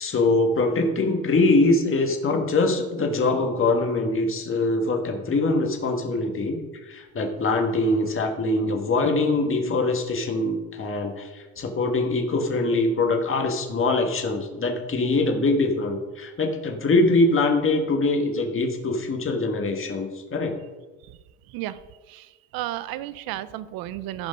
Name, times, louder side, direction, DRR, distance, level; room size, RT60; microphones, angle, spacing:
voice 1, 0.0-20.6, left 2 dB, 35° left, 3 dB, 1.8 m, -23 dB
voice 2, 22.5-24.3, right 14 dB, 70° right, 16 dB, 0.7 m, -32 dB
14.0 x 5.2 x 5.3 m, 1.2 s
supercardioid pair, 80°, 37 cm